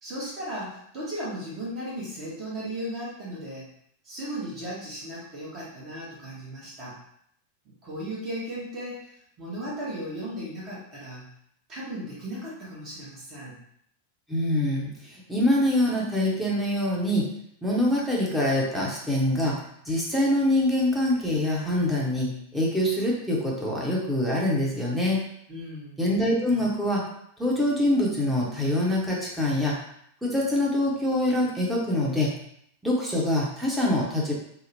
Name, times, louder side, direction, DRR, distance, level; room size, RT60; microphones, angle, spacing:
voice 1, 0.0-3.7 4.0-7.0 7.6-11.2 11.7-13.6 25.5-26.0, equal, 30° right, -7 dB, 1.0 m, -36 dB
voice 2, 14.3-17.3 17.6-25.2 26.0-27.0 27.4-29.8 30.2-32.3 32.8-34.3, left 1 dB, 5° right, -4 dB, 0.8 m, -25 dB
2.8 x 2.0 x 2.8 m, 0.70 s
figure-of-eight pair, 90°, 0 cm